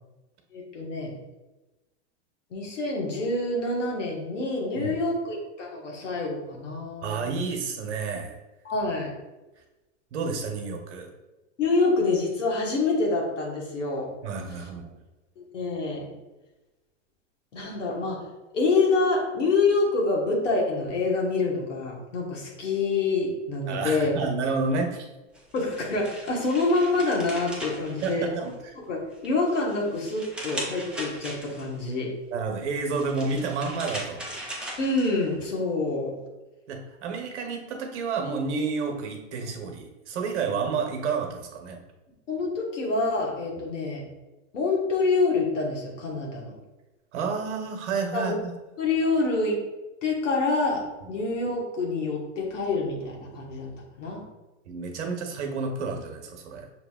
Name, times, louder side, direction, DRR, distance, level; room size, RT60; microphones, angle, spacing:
voice 1, 0.5-1.1 2.5-7.4 8.6-9.1 11.6-14.1 15.4-16.1 17.5-18.3 18.5-24.2 25.5-28.5 28.9-29.0 29.2-32.1 34.8-36.1 42.3-44.1 44.5-46.6 48.1-48.4 48.8-49.6 50.0-53.7 54.0-54.2, left 3 dB, 90° left, -1 dB, 1.4 m, -26 dB
voice 2, 7.0-8.4 9.6-9.7 10.1-11.1 14.2-15.0 23.7-25.1 28.0-28.8 32.3-34.2 36.7-41.8 47.1-48.5 51.0-51.1 54.6-56.7, right 4 dB, 70° right, 3 dB, 1.0 m, -30 dB
sound 1, 25.4-28.7 29.1-31.8 32.8-35.5, right 1 dB, 5° right, 0.7 m, -39 dB
6.2 x 2.9 x 2.3 m, 1.1 s
hypercardioid pair, 115°, 36 cm